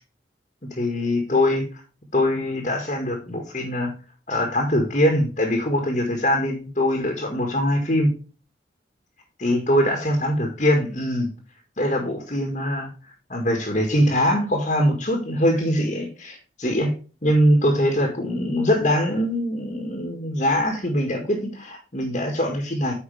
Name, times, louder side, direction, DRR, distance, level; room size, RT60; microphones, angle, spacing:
voice 1, 0.6-1.7 2.1-3.9 4.3-8.1 9.4-11.3 11.8-12.9 13.3-17.0 17.2-22.9, left 1 dB, 40° left, 2 dB, 1.9 m, -22 dB
9.3 x 5.7 x 3.4 m, 0.34 s
head